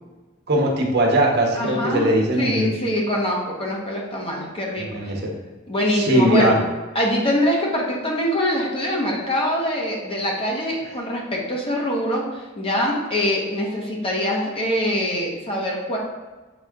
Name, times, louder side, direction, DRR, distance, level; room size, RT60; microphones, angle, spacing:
voice 1, 0.5-2.7 4.8-5.3 5.9-6.6, right 1 dB, 55° right, -1 dB, 1.2 m, -20 dB
voice 2, 1.5-2.1 2.4-5.1 5.7-6.6 6.9-16.0, left 1 dB, 30° left, -2 dB, 1.2 m, -24 dB
7.1 x 4.1 x 3.7 m, 1.2 s
head